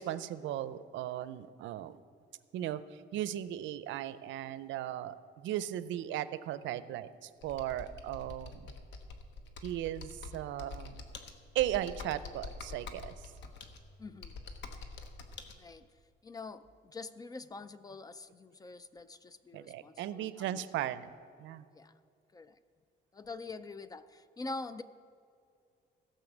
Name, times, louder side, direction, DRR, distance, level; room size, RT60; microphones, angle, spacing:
voice 1, 0.0-2.0 2.5-2.8 3.1-8.7 9.6-11.0 11.5-13.3 19.5-21.1 21.4-21.7, right 12 dB, 80° right, 14 dB, 0.5 m, -37 dB
Computer keyboard, 7.4-15.5, left 4 dB, 75° left, 1.1 m, -46 dB
voice 2, 14.0-14.3 15.5-15.9 16.2-20.6 21.7-21.9 22.3-22.6 23.1-24.8, left 3 dB, 20° left, 13 dB, 0.4 m, -45 dB
16.0 x 5.6 x 7.2 m, 2.4 s
cardioid pair, 145°, 19 cm